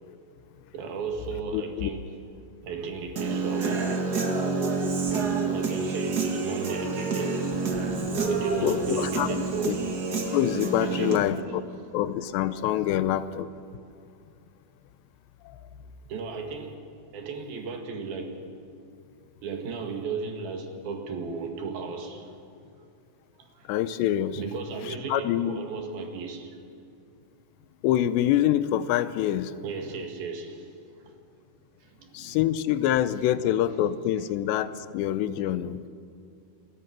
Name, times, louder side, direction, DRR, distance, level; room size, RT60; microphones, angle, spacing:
voice 1, 0.7-2.1 2.6-4.0 4.8-7.5 8.3-9.8 10.8-11.4 12.8-12.9 16.1-16.8 17.1-18.4 19.4-22.4 23.4-23.7 24.4-26.6 29.6-31.2 31.8-32.4, right 4 dB, 65° right, 4 dB, 3.6 m, -35 dB
voice 2, 1.5-1.9 8.1-8.2 8.6-9.3 9.6-9.8 10.3-11.6 11.9-13.5 15.4-15.6 23.7-24.4 24.9-25.6 27.8-29.6 32.1-35.8, left 11 dB, 90° left, 14 dB, 3.0 m, -26 dB
Human voice / Guitar, 3.2-11.2, right 4 dB, 50° right, 1.2 m, -28 dB
sound 1, 7.7-11.3, equal, 15° right, 4.1 m, -44 dB
27.5 x 21.5 x 6.1 m, 2.5 s
omnidirectional pair, 4.9 m